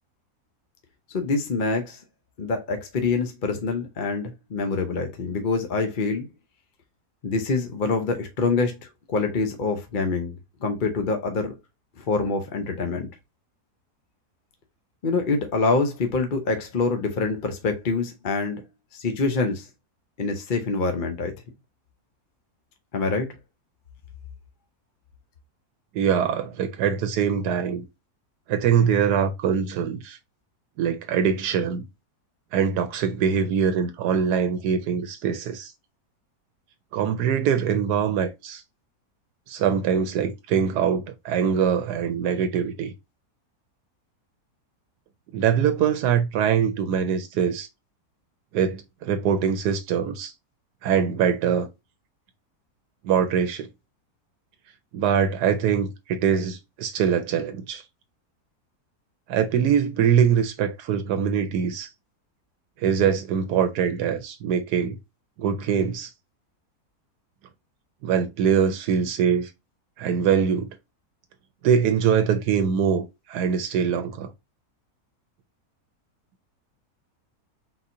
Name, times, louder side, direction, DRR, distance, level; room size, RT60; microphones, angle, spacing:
voice 1, 1.1-2.0 2.4-6.3 7.2-8.8 9.1-11.5 12.1-13.1 15.0-18.6 18.9-19.7 20.2-21.3 22.9-23.3, left 4 dB, 45° left, 0.7 m, -25 dB
voice 2, 25.9-27.9 28.5-30.2 30.8-31.8 32.5-35.7 36.9-38.6 39.5-42.9 45.3-47.7 48.5-50.3 50.8-51.7 53.0-53.7 54.9-57.8 59.3-61.9 62.8-65.0 65.4-66.1 68.0-69.5 70.0-70.7 71.6-74.3, right 7 dB, 85° right, 1.2 m, -23 dB
4.3 x 3.8 x 2.5 m
omnidirectional pair, 1.7 m